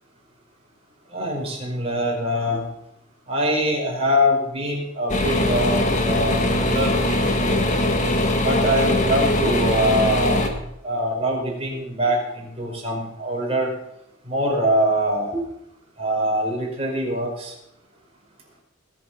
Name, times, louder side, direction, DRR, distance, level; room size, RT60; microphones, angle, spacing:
voice 1, 1.1-2.6 3.3-7.9 8.4-10.4 10.8-13.7 14.3-15.4 16.0-17.5, equal, 30° right, -2 dB, 5.3 m, -24 dB
sound 1, 5.1-10.5, left 1 dB, 40° left, 1.8 m, -21 dB
20.5 x 7.8 x 5.7 m, 0.80 s
head